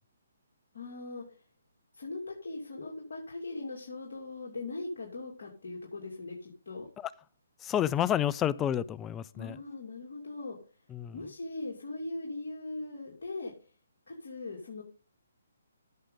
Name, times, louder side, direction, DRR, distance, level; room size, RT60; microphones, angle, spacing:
voice 1, 0.7-1.2 1.9-6.9 9.3-10.6 11.1-13.5 14.1-14.8, left 2 dB, 65° left, 2.7 m, -40 dB
voice 2, 7.6-9.6 10.9-11.1, left 10 dB, 15° left, 0.4 m, -30 dB
14.5 x 6.5 x 3.9 m
figure-of-eight pair, 140°, 0 cm